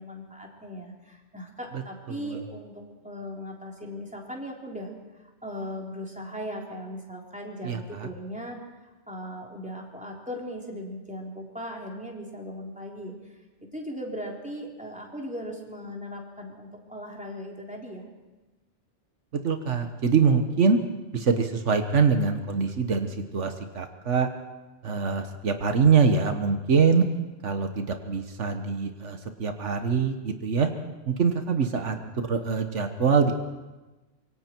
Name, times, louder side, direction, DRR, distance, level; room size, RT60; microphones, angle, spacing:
voice 1, 0.0-4.9 5.4-8.6 9.1-13.1 13.6-18.0 31.8-32.0, equal, 5° right, -1 dB, 3.6 m, -38 dB
voice 2, 2.1-2.4 7.6-8.1 19.3-20.8 21.1-24.3 24.8-27.0 27.4-30.7 31.1-32.0 32.3-33.3, right 5 dB, 80° right, 6 dB, 1.5 m, -24 dB
26.0 x 23.0 x 4.6 m, 1.1 s
omnidirectional pair, 1.2 m